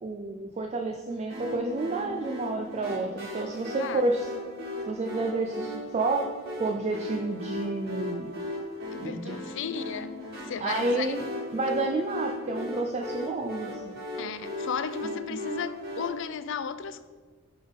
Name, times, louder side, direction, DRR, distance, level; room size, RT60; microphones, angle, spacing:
voice 1, 0.0-4.3 4.9-6.3 6.6-8.3 9.0-9.4 10.6-11.2 11.5-14.0 15.3-15.4, right 2 dB, 35° right, 0.4 m, -30 dB
sound 1, 1.3-16.1, left 1 dB, 55° right, 2.2 m, -37 dB
voice 2, 8.9-10.1 10.5-11.2 14.2-17.1, left 7 dB, 65° left, 0.4 m, -34 dB
7.6 x 3.6 x 5.1 m
head